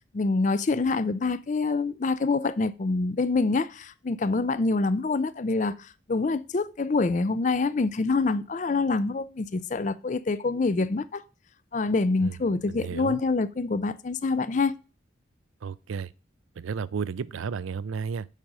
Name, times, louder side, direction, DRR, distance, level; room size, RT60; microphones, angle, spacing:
voice 1, 0.1-11.2 11.7-14.7, left 3 dB, 40° left, 0.4 m, -26 dB
voice 2, 12.7-13.2 15.6-16.1 16.6-18.3, right 6 dB, 90° right, 0.4 m, -33 dB
7.4 x 5.0 x 5.5 m
head